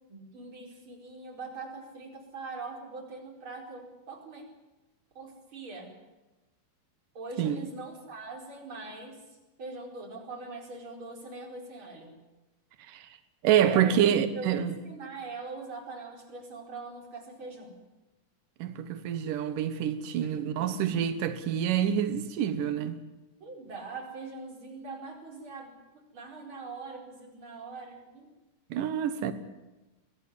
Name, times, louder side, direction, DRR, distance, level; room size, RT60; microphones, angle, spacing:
voice 1, 0.1-4.5 5.1-6.0 7.1-9.2 9.6-12.1 13.6-17.8 20.2-20.8 23.4-28.3, right 3 dB, 25° right, 5.0 m, -42 dB
voice 2, 13.4-14.7 18.6-23.0 28.7-29.3, right 9 dB, 90° right, 1.8 m, -27 dB
23.5 x 17.5 x 9.7 m
omnidirectional pair, 5.7 m